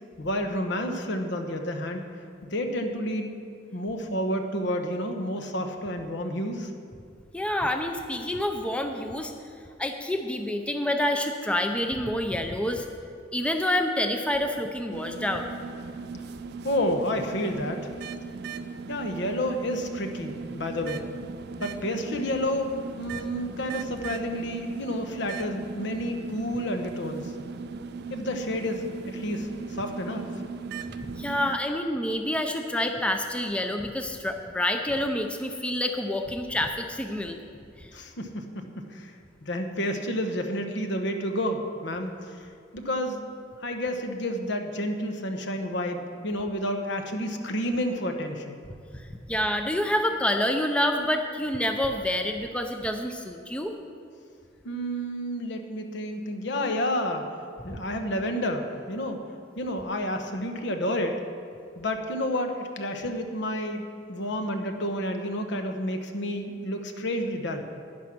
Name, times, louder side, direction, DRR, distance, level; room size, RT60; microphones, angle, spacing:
voice 1, 0.2-2.0 2.4-3.4 3.7-6.7 16.6-17.9 18.9-21.1 21.6-22.7 23.0-27.3 28.1-30.2 37.9-39.1 39.4-42.5 42.7-43.2 43.6-48.6 54.6-57.3 57.6-59.2 59.6-61.2 61.8-63.8 64.1-67.6, equal, 65° left, 5 dB, 1.1 m, -30 dB
voice 2, 7.3-9.3 9.8-12.9 13.3-15.5 31.2-37.4 37.8-37.9 49.0-53.7 57.7-57.8, left 1 dB, 5° left, 5 dB, 0.6 m, -28 dB
sound 1, 14.9-31.6, right 4 dB, 60° right, 0.4 m, -38 dB
11.0 x 9.7 x 6.0 m, 2.3 s
head